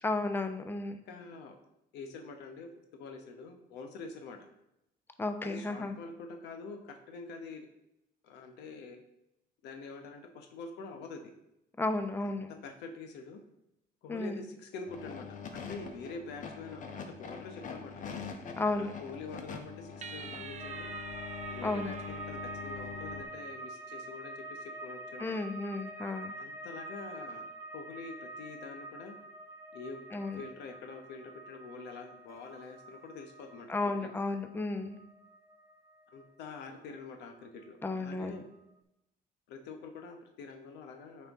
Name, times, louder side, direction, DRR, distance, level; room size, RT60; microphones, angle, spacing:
voice 1, 0.0-1.0 5.2-5.9 11.8-12.5 14.1-14.4 18.6-18.9 21.6-22.0 25.2-26.3 30.1-30.4 33.7-35.0 37.8-38.4, left 2 dB, 10° left, 8 dB, 0.6 m, -33 dB
voice 2, 1.0-1.6 1.9-4.5 5.4-7.6 8.2-9.0 9.6-11.3 12.2-12.3 12.6-13.4 14.0-17.9 18.7-20.9 21.5-25.4 26.4-27.5 27.7-29.1 29.7-30.0 30.3-34.1 36.1-38.4 39.5-41.3, left 4 dB, 85° left, 5 dB, 0.9 m, -46 dB
sound 1, 14.9-23.2, left 5 dB, 50° left, 1.0 m, -44 dB
sound 2, 20.0-23.6, right 7 dB, 45° right, 0.5 m, -48 dB
sound 3, 20.6-37.7 38.0-38.7, right 1 dB, 20° right, 0.9 m, -46 dB
8.9 x 4.4 x 3.5 m, 0.86 s
cardioid pair, 110°, 17 cm